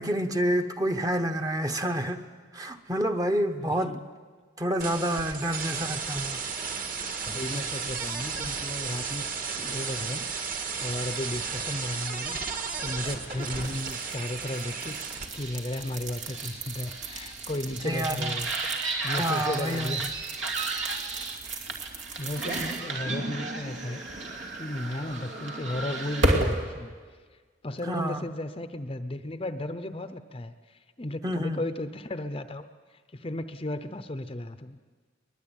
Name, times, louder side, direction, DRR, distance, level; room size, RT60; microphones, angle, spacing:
voice 1, 0.0-2.2 2.5-4.0 4.6-6.4 17.8-18.3 19.1-20.0 27.9-28.2 31.2-31.6, equal, 20° right, 1.0 m, -28 dB
voice 2, 3.6-4.0 5.8-6.0 7.2-9.3 9.5-20.1 22.2-24.0 24.5-26.9 27.3-32.6 32.9-34.8, left 1 dB, 30° left, 0.7 m, -35 dB
sound 1, 4.8-15.3, right 5 dB, 45° right, 2.1 m, -34 dB
sound 2, 13.0-26.6, right 2 dB, 75° right, 2.7 m, -33 dB
22.0 x 21.5 x 9.0 m
head